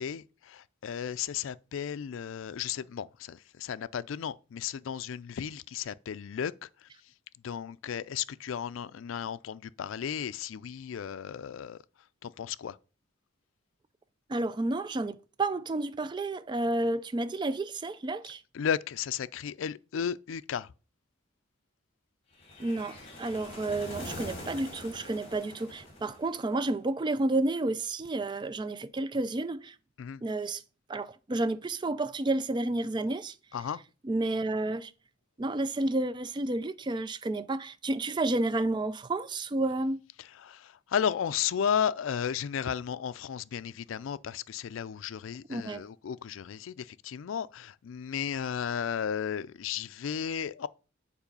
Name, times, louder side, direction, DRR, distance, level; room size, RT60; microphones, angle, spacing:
voice 1, 0.0-6.9 7.4-11.8 12.2-12.8 18.5-20.7 30.0-30.2 33.5-33.8 40.2-50.7, left 8 dB, 80° left, 0.4 m, -34 dB
voice 2, 14.3-18.4 22.6-29.7 30.2-30.6 30.9-33.3 34.0-34.9 35.4-40.0 45.5-45.8, right 2 dB, 25° right, 0.3 m, -31 dB
sound 1, 22.4-26.6, left 1 dB, 30° left, 3.0 m, -43 dB
7.3 x 4.8 x 5.2 m
head